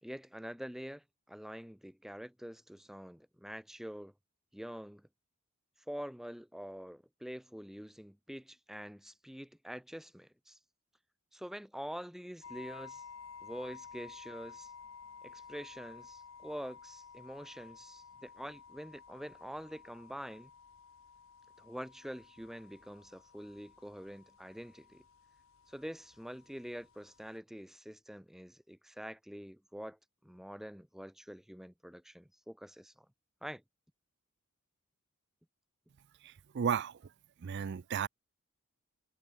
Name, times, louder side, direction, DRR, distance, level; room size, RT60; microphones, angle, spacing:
voice 1, 0.0-4.1 4.5-5.1 5.9-10.6 11.3-13.0 13.4-14.7 15.2-20.5 21.6-25.0 25.7-33.1 33.4-33.6, equal, ahead, 0.8 m, -46 dB
sound 1, 12.4-27.4, left 5 dB, 60° left, 0.9 m, -54 dB
voice 2, 36.2-37.0 37.4-38.1, right 7 dB, 50° right, 0.4 m, -34 dB
head